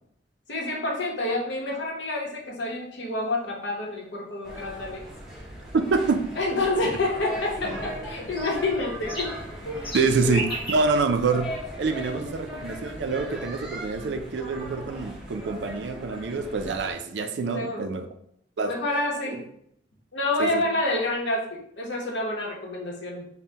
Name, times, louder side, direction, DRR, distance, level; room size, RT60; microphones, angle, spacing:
voice 1, 0.5-5.1 6.4-9.3 9.6-9.9 10.2-10.4 11.8-12.6 17.5-17.9 18.6-19.4 20.1-23.3, left 2 dB, 75° left, -2 dB, 0.9 m, -28 dB
sound 1, 2.4-17.7, right 1 dB, 30° left, 1.2 m, -43 dB
sound 2, 4.4-16.9, equal, ahead, 0.8 m, -38 dB
voice 2, 5.7-6.2 9.9-11.5 11.8-18.1 18.6-18.7 20.4-20.6, right 4 dB, 70° right, 7 dB, 0.4 m, -26 dB
5.4 x 2.1 x 2.8 m, 0.71 s
head